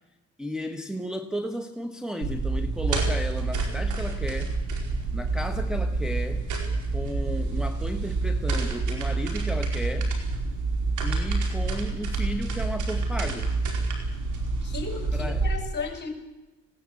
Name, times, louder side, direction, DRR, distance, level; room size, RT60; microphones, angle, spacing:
voice 1, 0.4-4.5 5.1-6.5 6.9-10.2 11.0-13.5 15.1-15.4, equal, ahead, 4 dB, 1.2 m, -34 dB
sound 1, 2.2-15.6, right 3 dB, 80° right, 4.6 m, -27 dB
voice 2, 14.6-16.1, left 4 dB, 35° left, 5 dB, 5.9 m, -35 dB
20.0 x 17.0 x 8.4 m, 1.0 s
cardioid pair, 90°, 30 cm